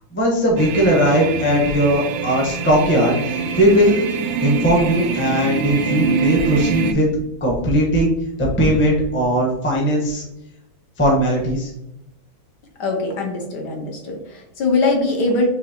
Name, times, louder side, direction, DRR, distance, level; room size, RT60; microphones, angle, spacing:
voice 1, 0.1-4.0 4.4-7.0 7.4-8.1 8.4-10.2 11.0-11.7, equal, 10° left, -3 dB, 0.7 m, -18 dB
sound 1, 0.6-6.9, right 5 dB, 75° right, 1.3 m, -25 dB
voice 2, 12.8-15.5, left 3 dB, 65° left, 1 dB, 1.2 m, -21 dB
6.2 x 2.6 x 2.8 m, 0.86 s
omnidirectional pair, 2.2 m